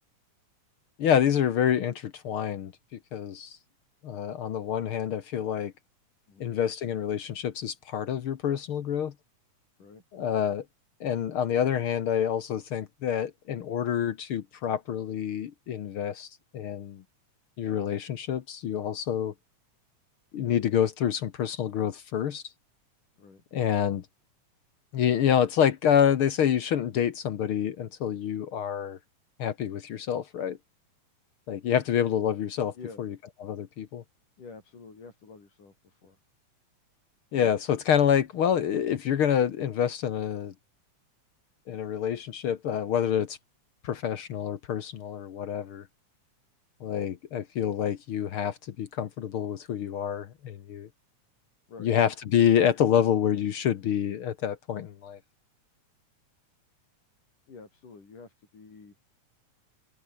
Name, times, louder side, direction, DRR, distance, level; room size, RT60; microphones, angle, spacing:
voice 1, 1.0-3.6 4.0-5.7 6.4-9.1 10.1-10.6 11.0-17.0 17.6-19.3 20.3-22.4 23.5-24.0 24.9-29.0 29.4-30.6 31.5-33.1 33.4-34.0 37.3-40.5 41.7-43.4 43.8-45.8 46.8-50.9 51.8-55.2, left 9 dB, 60° left, 1.5 m, -27 dB
voice 2, 34.4-36.2 51.7-51.9 57.5-59.0, left 4 dB, 85° left, 7.5 m, -48 dB
omnidirectional pair, 3.6 m